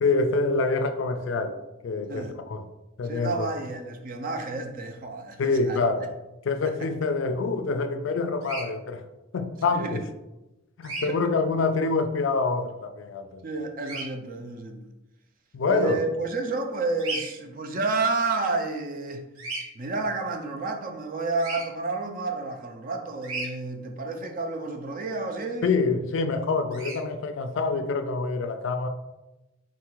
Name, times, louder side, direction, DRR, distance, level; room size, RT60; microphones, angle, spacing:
voice 1, 0.0-2.7 3.0-3.5 5.4-6.1 6.5-9.0 9.3-10.0 10.8-13.4 15.5-16.0 25.6-28.9, left 3 dB, 60° left, 0.3 m, -26 dB
voice 2, 2.1-2.4 3.1-6.1 6.6-6.7 9.7-10.0 11.0-11.2 13.4-14.8 15.7-19.2 19.7-25.7, right 3 dB, 40° right, 0.4 m, -30 dB
Bird vocalization bird call bird song, 8.4-8.7 10.8-11.1 13.8-14.0 17.0-17.3 19.4-19.6 21.4-21.6 23.2-23.5 26.7-27.0, right 2 dB, 85° right, 0.9 m, -33 dB
3.7 x 2.4 x 4.5 m
head